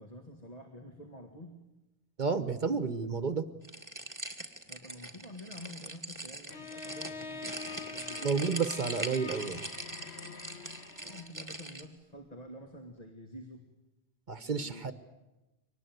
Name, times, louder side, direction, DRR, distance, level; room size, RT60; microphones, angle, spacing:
voice 1, 0.0-1.5 4.7-8.3 11.0-13.6 14.4-14.9, left 1 dB, 40° left, 3 dB, 2.1 m, -48 dB
voice 2, 2.2-3.5 8.2-9.6 14.3-14.9, right 5 dB, 50° right, 12 dB, 1.1 m, -31 dB
sound 1, 3.6-11.8, right 1 dB, 15° right, 1.9 m, -42 dB
Bowed string instrument, 6.5-11.4, left 5 dB, 90° left, 1.6 m, -45 dB
24.0 x 19.5 x 9.4 m, 1.0 s
omnidirectional pair, 1.1 m